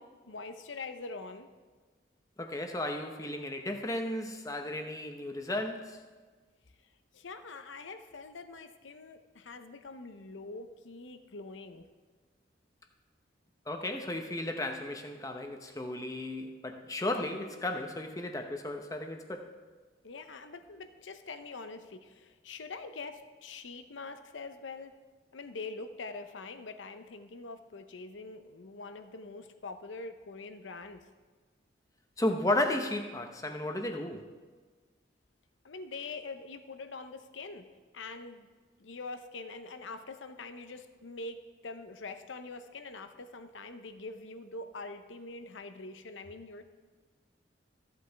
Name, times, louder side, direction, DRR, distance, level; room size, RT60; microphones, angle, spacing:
voice 1, 0.0-1.5 7.1-11.9 20.0-25.0 25.3-31.0 35.6-37.7 37.9-38.5 38.8-46.6, left 3 dB, 85° left, 0.7 m, -44 dB
voice 2, 2.4-6.0 13.7-19.5 32.2-34.2, left 1 dB, 20° left, 0.7 m, -34 dB
14.5 x 7.9 x 3.4 m
head